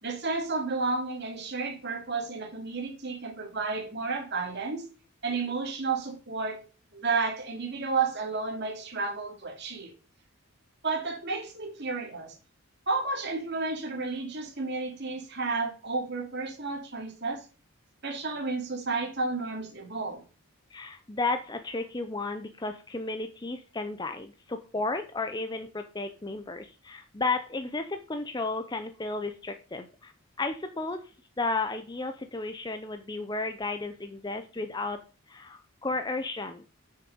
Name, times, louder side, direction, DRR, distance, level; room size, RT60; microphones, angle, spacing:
voice 1, 0.0-4.9 5.2-6.6 6.9-9.9 10.8-12.3 12.9-17.4 18.0-20.2, right 4 dB, 55° right, 2.6 m, -32 dB
voice 2, 20.7-30.1 30.4-31.0 31.4-35.0 35.3-36.6, left 3 dB, 20° left, 0.6 m, -33 dB
8.5 x 6.5 x 5.3 m
head